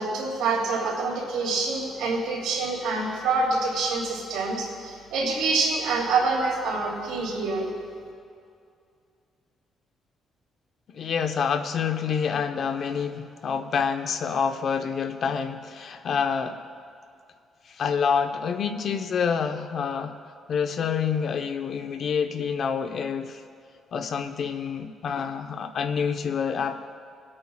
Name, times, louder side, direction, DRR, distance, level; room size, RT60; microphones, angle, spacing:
voice 1, 0.0-7.7, right 3 dB, 85° right, -3 dB, 2.9 m, -26 dB
voice 2, 10.9-16.6 17.7-20.2 20.5-23.4 23.9-26.8, left 6 dB, 60° left, 7 dB, 0.8 m, -27 dB
22.5 x 8.7 x 2.3 m, 2.4 s
cardioid pair, 90°, 0 cm